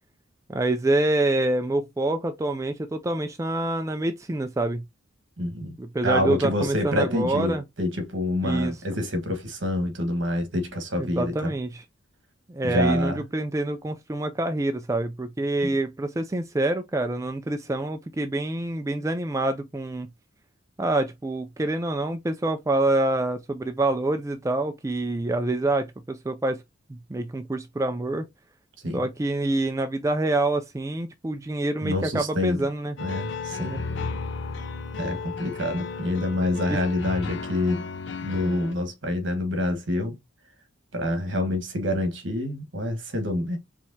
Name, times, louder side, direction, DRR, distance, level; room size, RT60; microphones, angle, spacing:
voice 1, 0.5-4.8 5.8-7.6 8.4-8.7 11.0-11.8 12.5-20.1 20.8-26.6 26.9-28.3 28.9-32.9 33.6-33.8 36.7-36.8, right 2 dB, 15° right, 0.3 m, -26 dB
voice 2, 5.4-5.8 6.0-11.5 12.6-13.2 15.6-15.7 28.8-29.1 31.8-32.6 33.0-33.8 35.0-37.9 38.2-40.2 40.9-43.6, left 1 dB, 65° right, 1.4 m, -27 dB
sound 1, 33.0-38.7, left 4 dB, 60° left, 0.5 m, -34 dB
4.5 x 3.3 x 2.7 m
head